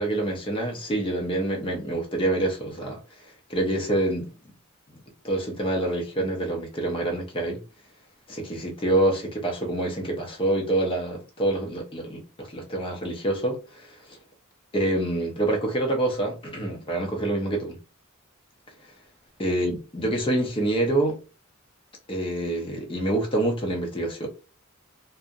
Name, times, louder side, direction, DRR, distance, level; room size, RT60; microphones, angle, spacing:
voice 1, 0.0-3.0 3.5-4.3 5.2-7.6 8.3-14.2 14.7-17.8 19.4-21.2 22.1-24.3, right 1 dB, 25° left, 0.5 m, -26 dB
2.4 x 2.0 x 2.6 m
head